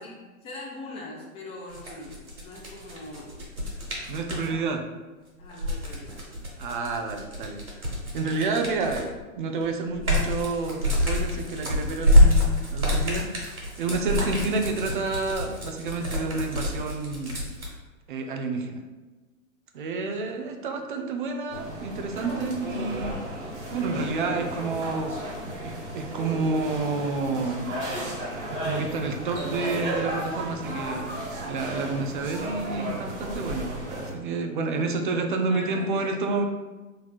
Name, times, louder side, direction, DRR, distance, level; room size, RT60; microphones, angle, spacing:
voice 1, 0.0-3.5 4.3-4.6 5.4-6.2 34.8-34.9 35.5-36.4, left 2 dB, 15° left, -2 dB, 0.5 m, -42 dB
sound 1, 1.7-4.5 5.4-9.2 9.6-17.7, left 1 dB, 90° right, 1.2 m, -25 dB
voice 2, 4.1-4.8 6.6-7.6 8.1-13.3 13.8-17.4 18.1-18.8 19.7-23.2 23.7-27.6 28.5-31.1 31.4-33.7 34.1-36.4, right 3 dB, 40° right, 4 dB, 0.4 m, -29 dB
sound 2, 21.5-34.1, right 1 dB, 55° right, 1.2 m, -34 dB
4.2 x 3.0 x 2.3 m, 1.2 s
figure-of-eight pair, 110°, 41 cm